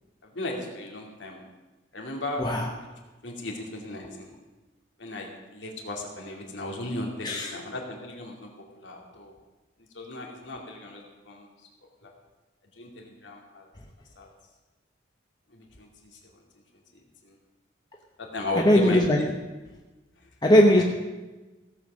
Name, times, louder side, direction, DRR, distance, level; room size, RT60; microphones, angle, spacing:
voice 1, 0.2-1.5 1.9-2.4 2.7-2.8 3.2-4.3 5.0-9.3 9.9-11.5 12.0-12.1 12.7-13.7 14.2-14.3 15.5-16.2 16.9-17.4 18.2-19.3 20.8-20.9, left 2 dB, 80° left, 1 dB, 2.5 m, -36 dB
voice 2, 18.6-19.2 20.4-20.8, equal, 20° left, 1 dB, 0.9 m, -19 dB
16.5 x 7.8 x 6.2 m, 1.2 s
head